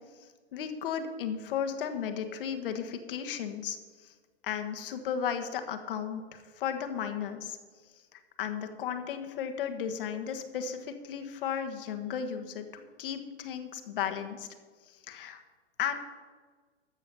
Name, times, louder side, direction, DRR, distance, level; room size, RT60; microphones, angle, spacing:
voice 1, 0.2-4.1 4.4-7.6 7.9-14.5 14.8-15.4 15.8-16.0, left 8 dB, 55° left, 6 dB, 1.4 m, -35 dB
14.0 x 7.3 x 5.5 m, 1.5 s
hypercardioid pair, 120°, 33 cm